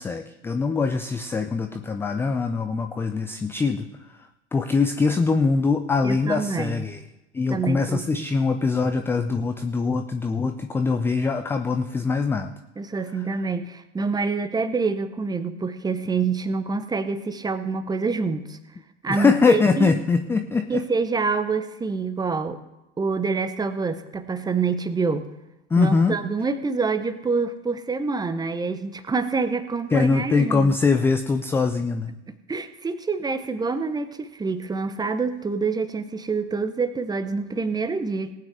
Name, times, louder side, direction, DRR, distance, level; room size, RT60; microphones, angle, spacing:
voice 1, 0.0-3.9 4.5-7.0 7.3-12.5 19.1-20.8 25.7-26.2 29.9-32.1, left 4 dB, 5° left, 8 dB, 0.4 m, -22 dB
voice 2, 6.0-6.8 7.5-8.3 12.8-18.6 19.0-19.9 20.7-22.6 23.0-25.3 25.8-30.8 32.5-38.3, right 4 dB, 10° right, 11 dB, 0.8 m, -26 dB
19.0 x 9.1 x 3.3 m, 0.94 s
figure-of-eight pair, 85°, 36 cm